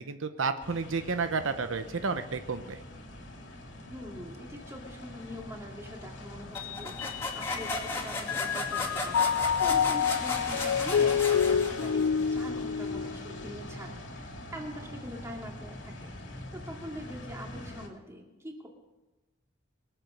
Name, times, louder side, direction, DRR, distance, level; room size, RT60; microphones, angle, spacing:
voice 1, 0.0-2.8, right 4 dB, 80° right, 9 dB, 0.8 m, -31 dB
sound 1, 0.6-17.9, left 2 dB, 65° left, 2.5 m, -42 dB
voice 2, 3.9-9.3 9.6-16.1 16.5-18.7, equal, 15° right, 0 dB, 2.3 m, -43 dB
sound 2, 6.5-12.2, left 2 dB, 15° left, 2.5 m, -36 dB
Mallet percussion, 6.6-7.9 8.3-13.7, left 7 dB, 90° left, 0.4 m, -28 dB
23.0 x 7.9 x 6.5 m, 1.1 s
head